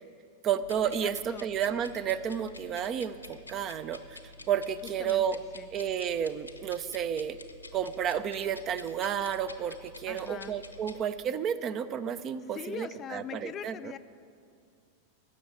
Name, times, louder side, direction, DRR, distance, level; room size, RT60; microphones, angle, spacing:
voice 1, 0.4-4.2 4.5-5.4 5.7-7.4 7.7-13.9, right 8 dB, 30° right, 14 dB, 0.5 m, -31 dB
sound 1, 0.6-11.0, left 2 dB, 85° left, 0.9 m, -49 dB
voice 2, 1.0-1.5 5.0-5.7 10.1-10.6 12.5-14.0, left 9 dB, 30° left, 13 dB, 0.4 m, -42 dB
13.0 x 7.8 x 8.5 m, 2.3 s
figure-of-eight pair, 90°, 0 cm